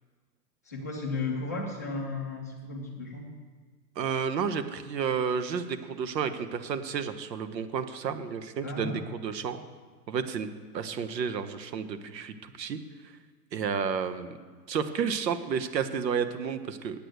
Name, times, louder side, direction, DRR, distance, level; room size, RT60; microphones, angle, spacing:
voice 1, 0.6-3.3 8.6-9.0, left 3 dB, 10° left, -4 dB, 0.4 m, -34 dB
voice 2, 4.0-9.6 10.1-10.5 10.7-12.8 13.5-14.4 14.7-17.0, right 6 dB, 80° right, 11 dB, 1.2 m, -31 dB
8.7 x 8.5 x 8.0 m, 1.5 s
hypercardioid pair, 155°, 50 cm